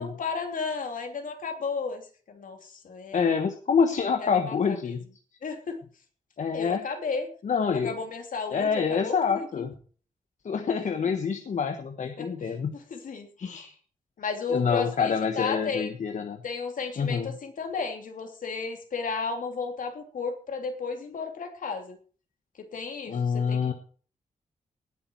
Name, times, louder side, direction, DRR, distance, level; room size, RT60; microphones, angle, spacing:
voice 1, 0.0-3.3 4.2-5.0 5.4-5.8 6.5-7.3 7.7-9.6 12.2-13.3 14.2-15.9 16.4-22.0 22.6-23.7, left 4 dB, 80° left, 4 dB, 3.0 m, -34 dB
voice 2, 3.1-5.0 6.4-6.8 7.4-8.0 8.5-9.7 10.4-12.7 13.4-13.7 14.5-16.4 17.0-17.3 23.1-23.7, left 6 dB, 65° left, 6 dB, 1.3 m, -26 dB
19.0 x 8.5 x 4.6 m, 0.42 s
wide cardioid pair, 145°, 14 cm